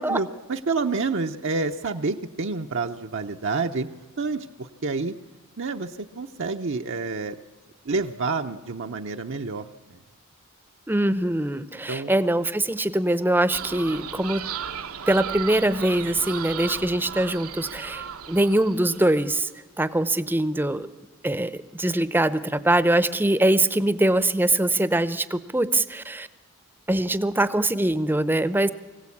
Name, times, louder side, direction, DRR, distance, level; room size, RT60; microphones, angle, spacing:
voice 1, 0.0-3.9 4.2-5.1 5.6-7.3 7.9-10.0 11.9-12.1, right 4 dB, 60° right, 4 dB, 0.8 m, -28 dB
voice 2, 10.9-14.4 15.1-19.5 19.8-20.9 21.2-26.3 26.9-28.7, right 1 dB, 10° right, 14 dB, 0.7 m, -23 dB
sound 1, 13.5-19.4, right 8 dB, 90° right, 1.3 m, -35 dB
24.0 x 16.5 x 8.5 m, 1.2 s
head